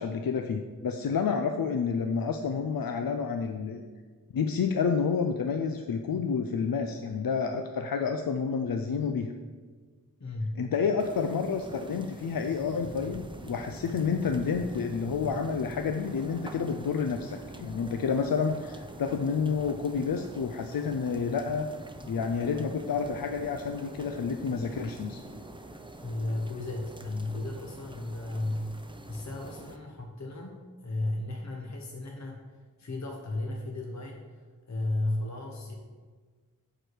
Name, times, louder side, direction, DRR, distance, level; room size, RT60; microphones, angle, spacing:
voice 1, 0.0-3.8 4.3-9.3 10.6-21.7 22.0-25.2, left 5 dB, 85° left, 5 dB, 0.5 m, -29 dB
voice 2, 10.2-10.6 26.0-28.7 29.1-32.4 32.8-34.3 34.7-35.7, left 2 dB, 55° left, 1 dB, 0.9 m, -34 dB
sound 1, 11.0-29.8, right 1 dB, 15° right, 0.6 m, -45 dB
7.6 x 4.8 x 6.3 m, 1.5 s
wide cardioid pair, 60°, 34 cm